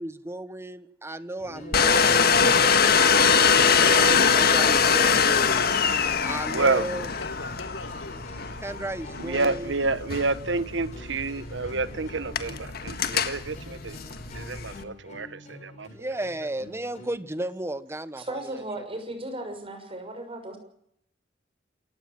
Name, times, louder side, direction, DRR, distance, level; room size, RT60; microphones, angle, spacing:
voice 1, 0.0-5.4 6.2-7.1 8.6-9.7 15.9-18.8, right 1 dB, 15° right, 1.1 m, -34 dB
voice 2, 1.4-1.8 4.4-5.0 6.4-8.3, left 3 dB, 80° left, 3.2 m, -41 dB
sound 1, 1.4-17.1, left 1 dB, 40° left, 7.2 m, -47 dB
Domestic sounds home sounds, 1.7-14.8, left 6 dB, 55° left, 1.7 m, -23 dB
voice 3, 6.5-6.8 9.2-14.0 14.3-15.9, right 3 dB, 70° right, 1.1 m, -28 dB
voice 4, 18.1-20.6, right 1 dB, 30° right, 6.3 m, -36 dB
28.0 x 16.5 x 7.5 m
head